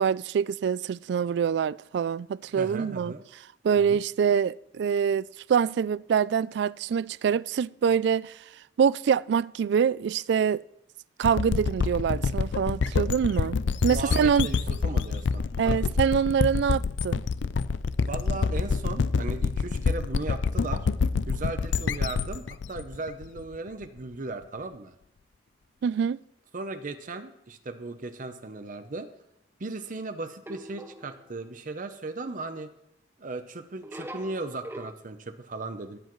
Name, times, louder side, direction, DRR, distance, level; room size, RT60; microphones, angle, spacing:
voice 1, 0.0-3.1 3.6-8.4 8.8-10.6 11.2-14.5 15.6-17.2 25.8-26.2, right 7 dB, 65° right, 0.3 m, -25 dB
voice 2, 2.6-3.2 3.8-4.0 13.9-15.8 18.0-20.9 21.3-25.0 26.5-29.1 29.6-32.7 33.2-36.0, right 3 dB, 45° right, 0.7 m, -37 dB
sound 1, 11.2-23.8, left 5 dB, 75° left, 0.4 m, -27 dB
sound 2, 30.5-31.5 33.8-34.9, right 1 dB, 15° right, 0.7 m, -42 dB
19.0 x 8.1 x 3.1 m
head